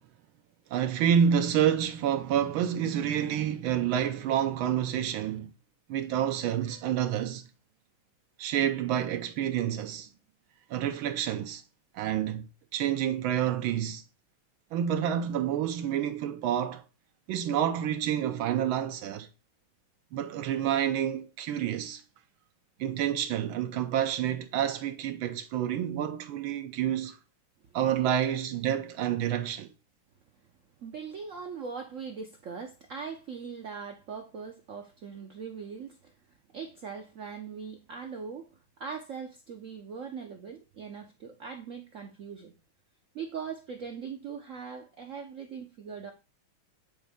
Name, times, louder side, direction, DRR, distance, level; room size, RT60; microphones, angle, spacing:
voice 1, 0.7-5.5 5.9-7.5 8.4-10.1 10.7-11.6 11.9-14.0 14.7-16.8 17.3-19.3 20.1-22.0 22.8-27.2 27.7-29.7, right 9 dB, 85° right, 1.5 m, -28 dB
voice 2, 30.8-36.1 36.5-42.5 43.1-46.1, right 6 dB, 70° right, 0.7 m, -40 dB
8.9 x 4.1 x 3.5 m
omnidirectional pair, 2.2 m